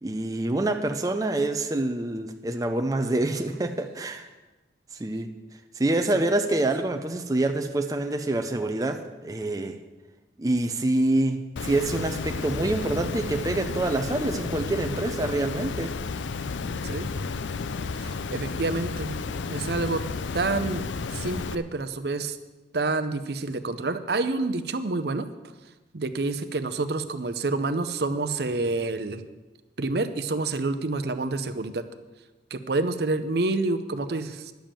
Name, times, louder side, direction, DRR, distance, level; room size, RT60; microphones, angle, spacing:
voice 1, 0.0-4.3 5.0-5.3 5.8-9.8 10.4-15.9, right 2 dB, 20° right, 5 dB, 0.5 m, -26 dB
Water, 11.6-21.6, left 4 dB, 90° left, 0.5 m, -32 dB
voice 2, 18.0-19.2 19.5-20.0 20.3-20.8 21.1-22.4 22.7-25.3 25.9-29.2 29.8-31.8 32.5-34.5, right 3 dB, 60° right, 10 dB, 0.7 m, -28 dB
10.5 x 7.1 x 7.5 m, 1.2 s
head